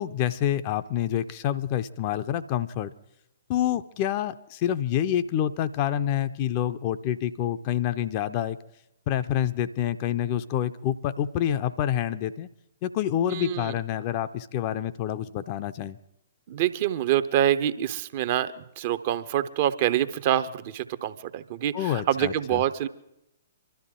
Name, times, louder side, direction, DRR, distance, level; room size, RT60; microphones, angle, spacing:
voice 1, 0.0-2.9 3.5-8.6 9.1-12.5 12.8-16.0 21.7-22.6, left 11 dB, 35° left, 12 dB, 0.5 m, -27 dB
voice 2, 13.3-13.7 16.5-22.9, right 11 dB, 40° right, 12 dB, 0.7 m, -26 dB
24.5 x 12.5 x 3.7 m, 0.82 s
figure-of-eight pair, 120°, 0 cm